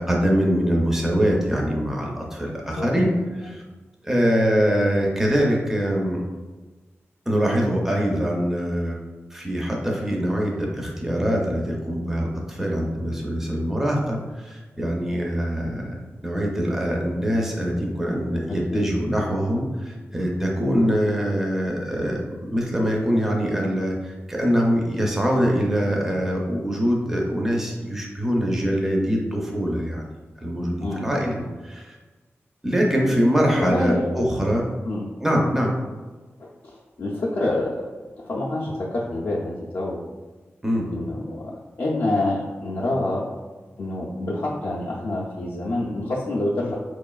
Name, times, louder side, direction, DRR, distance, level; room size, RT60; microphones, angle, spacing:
voice 1, 0.0-3.6 4.0-6.2 7.3-9.0 9.3-16.0 16.2-30.0 30.4-31.4 31.6-31.9 32.6-34.7 35.2-35.7 40.6-40.9, equal, 10° right, -1 dB, 0.5 m, -23 dB
voice 2, 2.8-3.1 3.4-3.5 18.5-18.9 30.8-31.1 31.4-31.5 33.6-34.2 34.8-35.1 36.4-37.9 38.2-40.0 40.9-43.3 43.8-46.8, left 2 dB, 55° left, -5 dB, 0.5 m, -27 dB
4.3 x 3.0 x 2.3 m, 1.3 s
wide cardioid pair, 135°, 5 cm